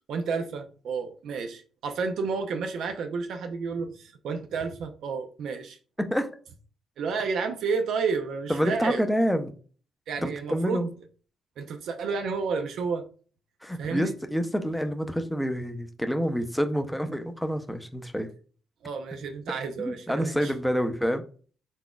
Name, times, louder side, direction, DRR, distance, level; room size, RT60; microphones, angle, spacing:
voice 1, 0.1-5.8 7.0-9.1 10.1-10.9 11.6-13.0 13.8-14.1 18.8-20.5, right 5 dB, 70° right, 6 dB, 0.6 m, -31 dB
voice 2, 6.0-6.3 8.5-9.5 10.2-10.9 13.6-18.3 19.8-21.2, equal, 5° left, 7 dB, 0.6 m, -27 dB
4.0 x 3.6 x 2.3 m, 0.40 s
cardioid pair, 90°, 0 cm